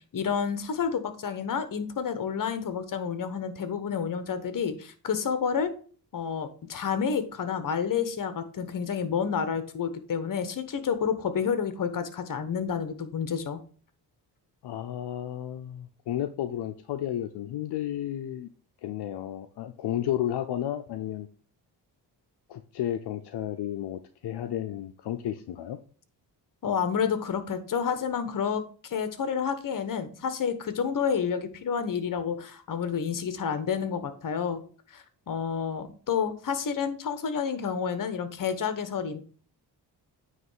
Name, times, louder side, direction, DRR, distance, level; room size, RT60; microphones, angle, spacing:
voice 1, 0.1-5.7 6.1-13.6 26.6-34.6 34.9-39.2, left 7 dB, 50° left, 10 dB, 1.1 m, -29 dB
voice 2, 14.6-18.5 18.8-21.3 22.5-25.8, left 11 dB, 75° left, 8 dB, 0.6 m, -32 dB
9.1 x 3.2 x 5.6 m, 0.42 s
cardioid pair, 85°, 41 cm